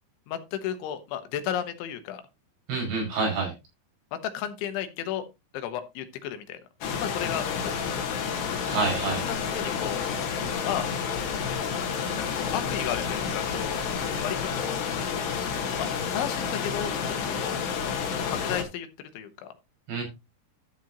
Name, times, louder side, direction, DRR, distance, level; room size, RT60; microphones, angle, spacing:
voice 1, 0.3-2.2 4.3-5.3 5.5-6.6 7.0-7.9 9.5-10.0 10.6-10.9 12.4-13.8 14.2-14.8 15.8-17.6 18.3-18.9 19.2-19.5, left 10 dB, 90° left, 9 dB, 3.7 m, -33 dB
voice 2, 2.7-3.5 8.7-9.2 19.9-20.0, right 4 dB, 70° right, 0 dB, 7.8 m, -27 dB
sound 1, 6.8-18.6, left 6 dB, 70° left, 3.7 m, -30 dB
13.5 x 7.6 x 3.0 m, 0.24 s
omnidirectional pair, 5.2 m